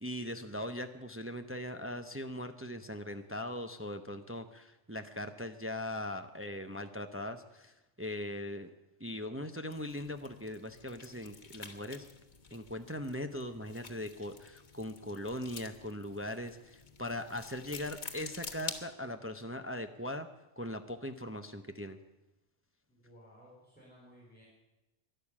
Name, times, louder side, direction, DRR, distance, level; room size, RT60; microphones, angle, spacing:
voice 1, 0.0-8.7 9.0-12.1 12.5-20.3 20.6-22.0, left 1 dB, 15° right, 7 dB, 0.5 m, -40 dB
sound 1, 9.7-18.8, left 5 dB, 40° left, 1.3 m, -49 dB
voice 2, 22.9-24.4, equal, 10° left, -5 dB, 4.2 m, -58 dB
12.0 x 11.5 x 8.5 m, 0.99 s
omnidirectional pair, 1.2 m